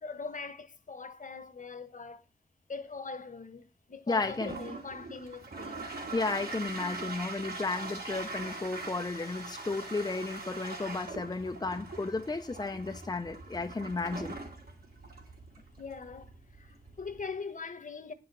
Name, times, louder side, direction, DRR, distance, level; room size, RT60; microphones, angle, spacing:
voice 1, 0.0-2.2 2.7-5.9 15.8-18.1, left 4 dB, 50° left, 1.2 m, -42 dB
voice 2, 4.1-4.6 6.1-14.3, left 3 dB, 25° left, 0.6 m, -33 dB
Toilet flush, 4.2-17.4, right 3 dB, 70° right, 3.3 m, -42 dB
9.5 x 5.8 x 6.7 m
wide cardioid pair, 120°, 17 cm